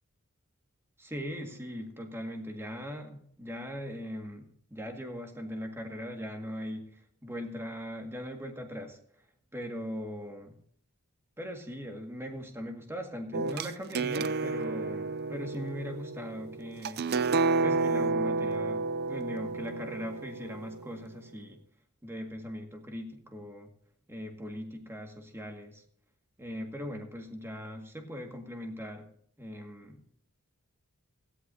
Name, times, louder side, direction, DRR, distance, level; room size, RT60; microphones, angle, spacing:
voice 1, 1.0-9.0 9.5-10.6 11.4-17.0 17.6-21.6 22.0-23.7 24.1-25.8 26.4-29.1 29.4-30.0, equal, 10° right, 3 dB, 1.9 m, -40 dB
sound 1, 13.3-21.0, right 3 dB, 50° right, 0.5 m, -31 dB
17.0 x 14.0 x 2.8 m, 0.63 s
head